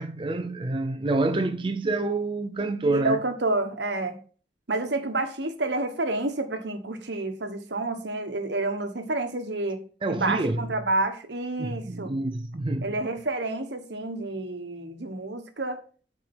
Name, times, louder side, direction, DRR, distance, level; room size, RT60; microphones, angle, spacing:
voice 1, 0.0-3.2 10.0-10.7 11.6-12.9, right 2 dB, 30° right, 0.6 m, -27 dB
voice 2, 2.8-4.2 4.7-12.1 12.8-15.8, right 2 dB, 75° right, 1.4 m, -29 dB
7.4 x 5.1 x 6.1 m
head